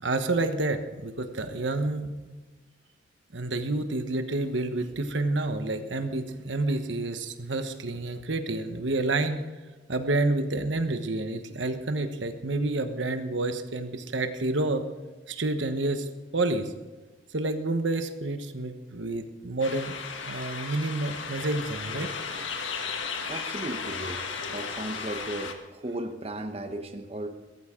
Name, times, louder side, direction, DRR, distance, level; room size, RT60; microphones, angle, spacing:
voice 1, 0.0-2.4 3.3-9.4 9.9-14.8 15.3-16.1 16.3-16.7 17.3-20.0 20.2-22.1, right 2 dB, 75° right, 7 dB, 1.2 m, -29 dB
sound 1, 19.6-25.5, left 5 dB, 85° left, 1.6 m, -35 dB
voice 2, 23.3-24.2 24.5-27.3, right 1 dB, 30° right, 5 dB, 1.0 m, -35 dB
16.5 x 15.0 x 3.8 m, 1.2 s
head